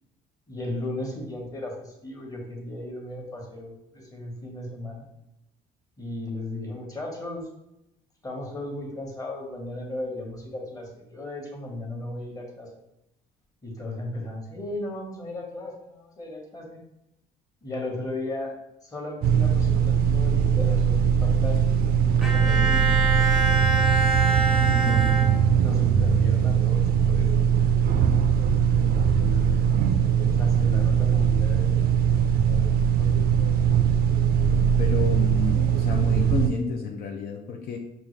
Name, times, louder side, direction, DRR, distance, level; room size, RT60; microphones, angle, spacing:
voice 1, 0.5-5.1 6.0-7.5 8.2-12.7 13.6-16.8 17.6-18.5 18.8-21.8 22.0-23.6 24.5-27.4 29.0-29.9 30.2-33.4, left 1 dB, 20° left, -1 dB, 1.2 m, -36 dB
sound 1, 19.2-36.5, right 8 dB, 65° right, 0.4 m, -21 dB
Bowed string instrument, 22.2-25.9, right 2 dB, 5° right, 0.6 m, -26 dB
voice 2, 24.7-25.1 34.5-37.8, left 6 dB, 60° left, 1 dB, 0.5 m, -31 dB
5.3 x 2.4 x 3.1 m, 0.86 s
cardioid pair, 110°, 17 cm